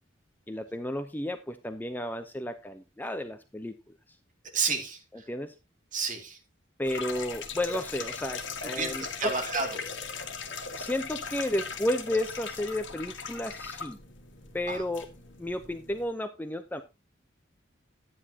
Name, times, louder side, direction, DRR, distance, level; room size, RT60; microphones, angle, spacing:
voice 1, 0.5-3.8 5.3-5.5 6.8-9.3 10.8-14.0 14.5-15.1 15.4-16.8, left 1 dB, 10° left, 8 dB, 0.7 m, -32 dB
voice 2, 4.5-5.3 5.9-6.4 8.7-9.8 14.7-14.8, right 4 dB, 40° right, 3 dB, 2.5 m, -31 dB
sound 1, 6.8-16.1, left 5 dB, 65° left, 1.9 m, -39 dB
12.0 x 9.8 x 2.9 m, 0.25 s
head